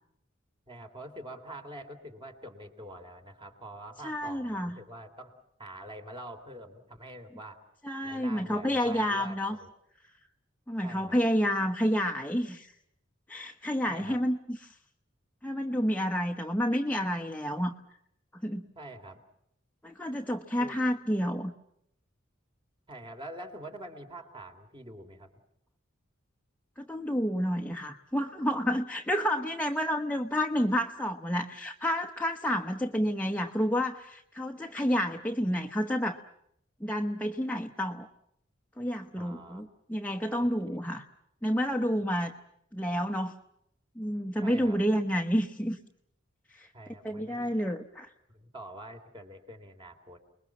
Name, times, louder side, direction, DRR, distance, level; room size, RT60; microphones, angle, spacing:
voice 1, 0.7-5.3 5.6-7.6 8.0-9.7 10.8-11.2 13.9-14.2 18.7-19.2 20.6-20.8 22.9-25.3 39.2-39.6 40.4-40.5 44.4-44.8 46.7-47.5 48.3-50.2, right 1 dB, 25° right, 5 dB, 3.0 m, -45 dB
voice 2, 4.0-4.8 7.8-9.6 10.7-12.7 13.3-14.7 15.4-17.7 18.4-18.6 19.8-21.5 26.8-36.2 36.8-38.1 38.8-41.0 41.4-42.3 42.7-43.3 44.0-45.8 46.5-46.7 47.0-48.1, equal, 10° left, 3 dB, 0.9 m, -29 dB
29.5 x 21.0 x 7.2 m, 0.74 s
head